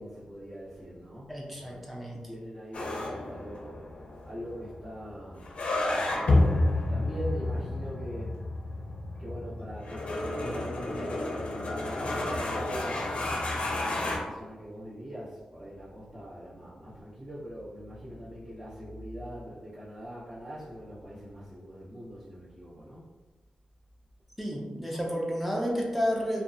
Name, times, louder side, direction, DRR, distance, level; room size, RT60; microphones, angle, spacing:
voice 1, 0.0-1.8 2.2-3.7 4.2-5.5 5.9-8.4 8.7-8.8 9.2-23.1 24.9-25.1, equal, 50° right, -14 dB, 1.1 m, -42 dB
voice 2, 1.3-2.2 24.4-26.4, equal, 5° right, -2 dB, 0.4 m, -31 dB
sound 1, 2.7-14.2, left 2 dB, 60° left, 0.5 m, -30 dB
2.6 x 2.2 x 2.5 m, 1.2 s
wide cardioid pair, 120°, 2 cm